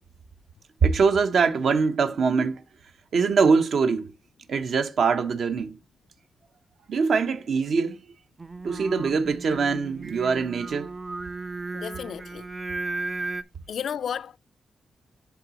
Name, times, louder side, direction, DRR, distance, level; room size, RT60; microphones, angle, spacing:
voice 1, 0.8-2.6 3.1-4.1 4.5-5.8 6.9-8.0 8.6-10.9, right 5 dB, 70° right, 0.7 m, -23 dB
Singing, 8.4-13.4, right 3 dB, 25° right, 0.4 m, -35 dB
voice 2, 11.7-12.5 13.7-14.4, left 8 dB, 70° left, 0.3 m, -33 dB
10.5 x 4.0 x 2.9 m
wide cardioid pair, 115°, 0 cm